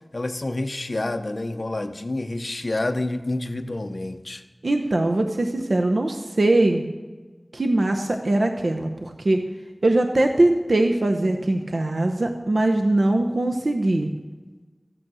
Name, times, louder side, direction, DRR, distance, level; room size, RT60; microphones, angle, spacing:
voice 1, 0.1-4.4, left 2 dB, 55° left, 6 dB, 0.7 m, -28 dB
voice 2, 4.6-6.8 7.5-9.4 9.8-14.1, right 2 dB, 80° right, 4 dB, 0.8 m, -21 dB
13.5 x 9.1 x 6.2 m, 1.3 s
wide cardioid pair, 45°, 0 cm